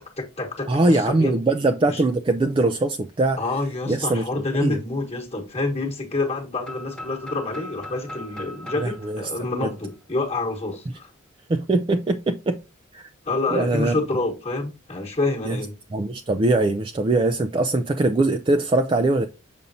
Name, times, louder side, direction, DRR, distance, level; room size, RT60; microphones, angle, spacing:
voice 1, 0.2-1.3 1.8-2.0 3.4-11.1 13.2-15.7, left 2 dB, 30° left, 1.2 m, -27 dB
voice 2, 0.7-3.4 3.9-4.2 4.6-4.8 8.8-9.2 11.5-12.6 12.9-13.1 13.5-14.0 15.5-15.6 15.9-19.3, right 2 dB, 25° right, 0.3 m, -21 dB
sound 1, 6.6-10.5, left 1 dB, 5° left, 1.0 m, -40 dB
6.9 x 5.3 x 2.6 m
head